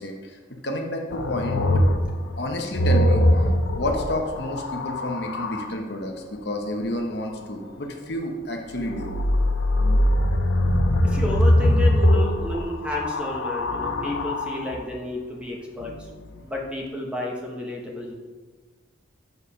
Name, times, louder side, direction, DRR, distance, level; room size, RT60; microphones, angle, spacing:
voice 1, 0.0-1.9 2.4-3.2 3.8-9.1, left 1 dB, 55° left, 2 dB, 0.9 m, -30 dB
sound 1, 1.1-5.7 8.7-14.8 15.8-16.4, left 1 dB, 80° left, 0.6 m, -22 dB
voice 2, 11.0-15.9 16.4-18.1, left 1 dB, 5° right, -1 dB, 0.9 m, -31 dB
6.7 x 4.8 x 5.6 m, 1.4 s
head